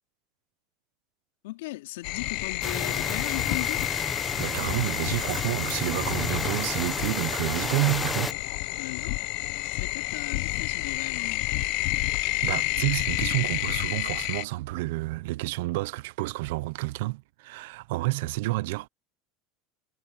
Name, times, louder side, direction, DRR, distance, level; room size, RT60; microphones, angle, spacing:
voice 1, 1.4-3.9 8.8-11.5, left 19 dB, 80° left, 3.6 m, -38 dB
sound 1, 2.0-14.4, left 22 dB, 65° left, 1.2 m, -30 dB
sound 2, 2.6-8.3, left 3 dB, 10° left, 1.1 m, -32 dB
voice 2, 4.4-8.4 12.2-18.9, right 21 dB, 75° right, 0.8 m, -29 dB
supercardioid pair, 120°, 0 cm